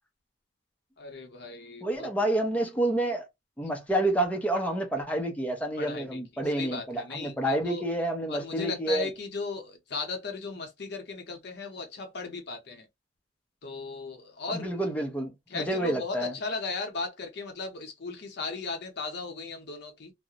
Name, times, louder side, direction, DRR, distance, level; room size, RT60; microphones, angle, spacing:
voice 1, 1.0-2.1 5.8-6.2 6.5-7.8 8.3-12.9 13.6-14.8 15.5-20.1, left 4 dB, 55° left, 0.6 m, -36 dB
voice 2, 1.8-3.3 3.6-9.1 14.5-16.4, right 1 dB, 10° left, 0.5 m, -29 dB
2.3 x 2.0 x 2.8 m
head